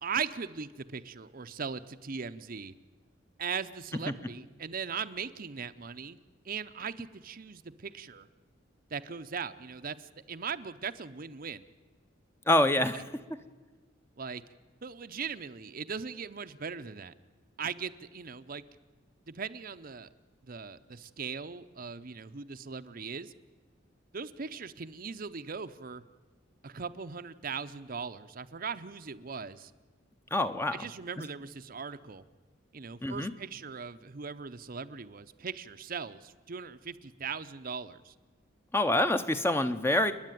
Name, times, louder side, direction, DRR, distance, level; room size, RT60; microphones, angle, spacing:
voice 1, 0.0-2.7 3.4-6.2 6.4-8.3 8.9-11.6 12.9-13.0 14.2-14.4 14.8-17.1 17.6-18.6 19.3-20.1 20.5-23.3 24.1-26.0 26.6-29.7 30.7-32.2 32.7-38.1, right 6 dB, 45° right, 11 dB, 0.7 m, -39 dB
voice 2, 12.5-13.0 30.3-30.8 33.0-33.3 38.7-40.1, left 1 dB, 10° left, 10 dB, 0.8 m, -26 dB
30.0 x 10.5 x 9.2 m, 1.4 s
head